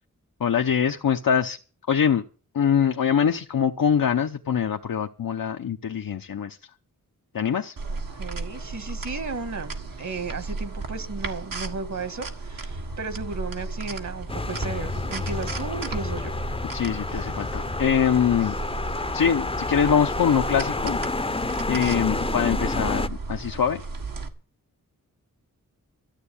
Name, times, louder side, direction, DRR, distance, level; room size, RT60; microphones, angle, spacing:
voice 1, 0.4-1.6 1.9-2.3 2.5-6.6 7.3-7.7 16.7-18.5 19.1-21.0 21.7-23.8, left 7 dB, 85° left, 0.9 m, -23 dB
sound 1, 7.8-24.3, right 3 dB, 85° right, 1.8 m, -35 dB
voice 2, 8.1-9.7 10.0-16.4, right 4 dB, 60° right, 1.7 m, -34 dB
sound 2, 14.3-23.1, left 3 dB, 15° left, 0.6 m, -29 dB
13.5 x 8.1 x 8.6 m
wide cardioid pair, 70°, 33 cm